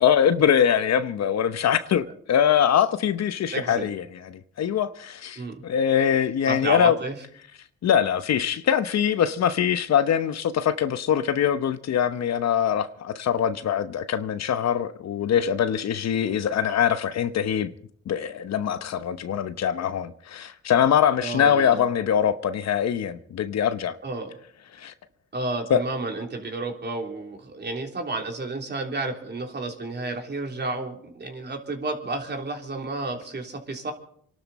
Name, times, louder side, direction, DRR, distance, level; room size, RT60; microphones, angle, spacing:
voice 1, 0.0-6.9 7.8-17.7 18.1-24.0 24.8-24.9 25.7-25.8, left 8 dB, 60° left, 1.0 m, -23 dB
voice 2, 3.5-3.9 5.4-5.6 6.5-7.1 21.2-21.9 24.0-24.3 25.3-33.9, right 2 dB, 35° right, 3.4 m, -31 dB
27.0 x 12.0 x 4.2 m
cardioid pair, 90°, 30 cm